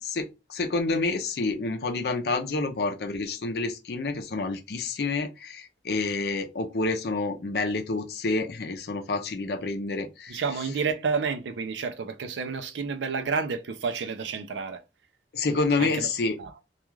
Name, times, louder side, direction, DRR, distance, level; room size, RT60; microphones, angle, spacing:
voice 1, 0.2-10.4 15.3-16.4, left 3 dB, 65° left, 0.5 m, -28 dB
voice 2, 10.3-14.8 15.8-16.1 16.4-16.5, right 5 dB, 90° right, 0.5 m, -30 dB
2.4 x 2.3 x 3.0 m
head